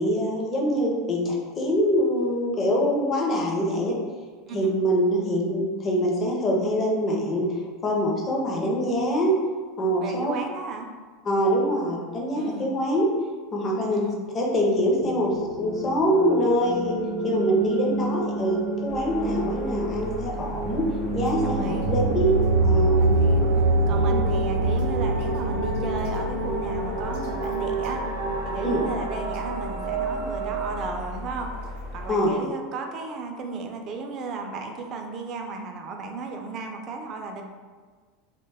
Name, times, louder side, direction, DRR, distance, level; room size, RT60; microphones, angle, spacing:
voice 1, 0.0-4.0 4.5-9.3 9.8-10.3 11.2-13.1 13.5-14.0 14.3-15.3 15.6-17.0 17.2-23.0 24.1-24.3 28.6-28.8 32.1-32.3, equal, 25° left, -2 dB, 0.5 m, -24 dB
voice 2, 10.0-10.9 12.4-12.7 13.8-14.2 21.4-21.9 22.9-28.0 28.4-31.5 31.9-37.4, right 4 dB, 35° right, 3 dB, 0.3 m, -35 dB
sound 1, 14.8-30.9, right 2 dB, 85° right, 0.7 m, -26 dB
sound 2, 18.9-32.1, left 1 dB, 75° left, 0.8 m, -37 dB
2.4 x 2.1 x 3.3 m, 1.5 s
supercardioid pair, 160°, 0 cm